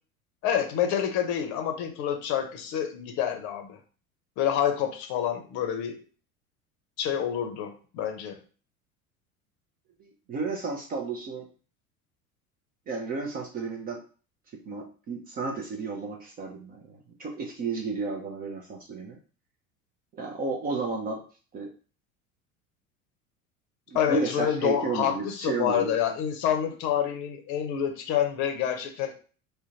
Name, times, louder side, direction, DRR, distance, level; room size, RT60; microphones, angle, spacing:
voice 1, 0.4-3.8 4.4-6.0 7.0-8.4 23.9-29.1, left 9 dB, 40° left, 5 dB, 0.7 m, -27 dB
voice 2, 10.0-11.4 12.9-14.0 14.7-19.2 20.1-21.2 21.5-21.7 23.9-25.9, right 4 dB, 20° right, 1 dB, 0.4 m, -32 dB
3.6 x 2.2 x 2.7 m, 0.38 s
figure-of-eight pair, 70°, 43 cm